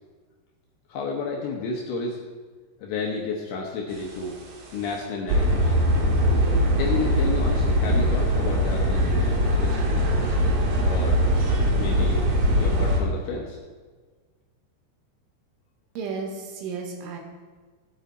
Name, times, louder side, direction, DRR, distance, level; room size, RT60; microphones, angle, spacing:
voice 1, 0.9-2.2 2.8-4.4 4.7-5.8 6.8-9.3 9.6-10.0 10.9-11.2 11.7-12.2 12.5-13.6, left 4 dB, 70° left, -1 dB, 2.5 m, -31 dB
sound 1, 4.1-4.4 4.8-4.9 5.3-13.0, equal, 60° right, 2.7 m, -21 dB
voice 2, 16.0-17.2, right 5 dB, 80° right, 1 dB, 3.9 m, -33 dB
17.0 x 8.0 x 4.2 m, 1.4 s
omnidirectional pair, 5.6 m